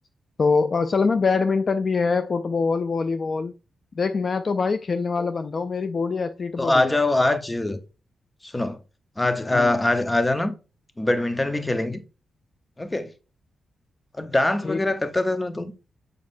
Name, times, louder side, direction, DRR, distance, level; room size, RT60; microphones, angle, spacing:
voice 1, 0.4-3.5 4.0-7.0 9.5-9.7 14.6-14.8, left 4 dB, 45° left, 0.3 m, -24 dB
voice 2, 6.6-7.8 8.4-8.8 9.2-10.5 11.0-12.0 12.8-13.1 14.2-15.7, left 2 dB, 15° left, 0.8 m, -23 dB
7.4 x 5.3 x 2.6 m
cardioid pair, 95°, 0 cm